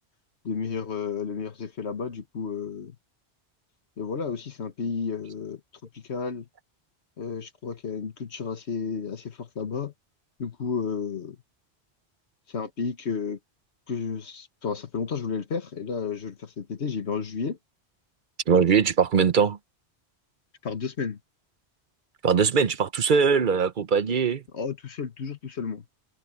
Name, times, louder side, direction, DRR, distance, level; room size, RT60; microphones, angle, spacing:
voice 1, 0.4-2.9 4.0-5.6 5.9-6.5 7.2-9.9 10.4-11.4 12.5-13.4 13.9-17.6 20.6-21.2 24.5-25.8, left 5 dB, 80° left, 1.6 m, -32 dB
voice 2, 18.5-19.6 22.2-24.4, right 6 dB, 50° right, 0.8 m, -21 dB
open air
omnidirectional pair, 1.1 m